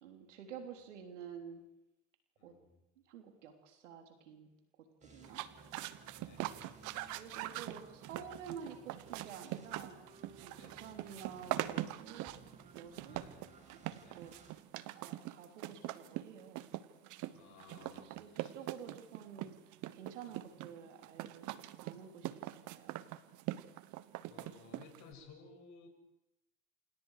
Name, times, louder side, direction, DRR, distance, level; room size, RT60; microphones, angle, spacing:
voice 1, 0.0-1.6 2.4-2.6 3.1-4.5 5.0-5.4 6.2-6.6 7.1-10.0 10.4-12.3 12.7-13.2 13.7-14.3 14.9-16.6 17.8-19.6 19.9-23.0, right 7 dB, 85° right, 5 dB, 3.4 m, -50 dB
voice 2, 2.4-2.8 5.2-5.5 6.2-6.5 10.6-10.9 13.0-13.4 14.0-14.3 17.3-18.5 20.3-20.7 24.3-25.9, left 5 dB, 55° left, 3 dB, 7.6 m, -58 dB
sound 1, 5.0-14.5, right 3 dB, 20° right, 6.1 m, -59 dB
sound 2, 5.2-25.1, right 15 dB, 55° right, 1.3 m, -43 dB
28.5 x 27.5 x 4.9 m, 0.87 s
hypercardioid pair, 85°, 35 cm